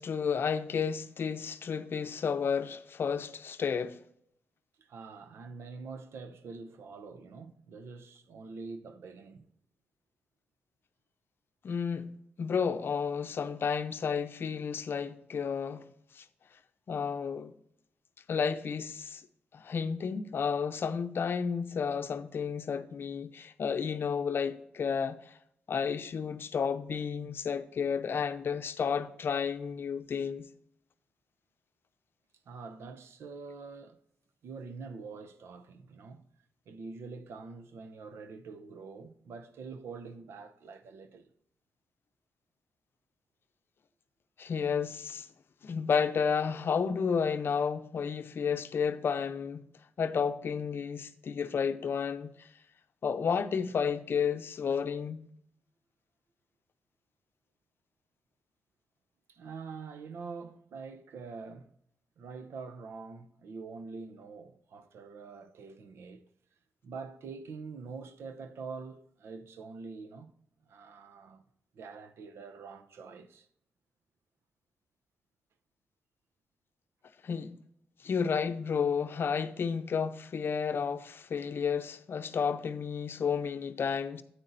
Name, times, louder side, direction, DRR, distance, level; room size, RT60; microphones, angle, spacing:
voice 1, 0.0-4.0 11.6-12.1 12.4-15.9 16.1-16.2 16.9-17.5 18.3-19.2 19.5-25.3 25.7-30.5 44.4-45.3 45.6-49.7 50.0-52.5 53.0-55.2 77.2-77.5 78.0-84.2, left 6 dB, 60° left, 0.6 m, -32 dB
voice 2, 4.8-9.5 32.5-34.0 34.4-36.2 36.7-41.3 59.3-61.7 62.2-66.3 66.8-70.3 70.7-71.4 71.7-73.5, right 4 dB, 70° right, 0.7 m, -45 dB
9.7 x 8.1 x 2.6 m
supercardioid pair, 55°, 4 cm